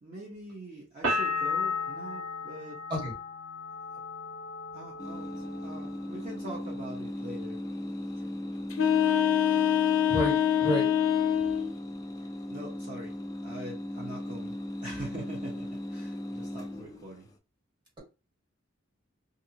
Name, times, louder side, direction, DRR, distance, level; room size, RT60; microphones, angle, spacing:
voice 1, 0.0-2.8 4.7-7.7 12.5-13.2 13.4-17.3, right 1 dB, 40° right, 0.9 m, -43 dB
sound 1, 1.0-6.7 7.0-7.7, left 3 dB, 75° right, 1.2 m, -35 dB
sound 2, 5.0-17.3, left 1 dB, 20° left, 0.4 m, -38 dB
sound 3, 8.7-11.7, left 9 dB, 80° left, 0.5 m, -24 dB
voice 2, 10.1-10.9, right 1 dB, 25° right, 1.6 m, -30 dB
2.6 x 2.5 x 2.8 m
head